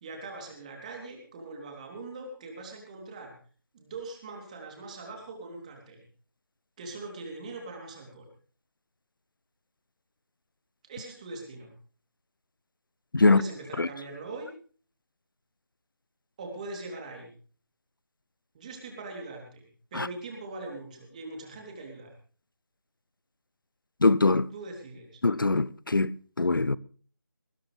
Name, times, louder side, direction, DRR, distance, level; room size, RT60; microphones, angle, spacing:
voice 1, 0.0-3.3 3.7-6.0 6.8-8.3 10.8-11.7 13.2-14.5 16.4-17.3 18.5-22.1 24.5-25.2, right 3 dB, 20° right, 3.2 m, -41 dB
voice 2, 24.0-24.5 25.2-26.8, left 3 dB, 70° left, 0.7 m, -23 dB
20.0 x 15.5 x 3.4 m
figure-of-eight pair, 160°, 12 cm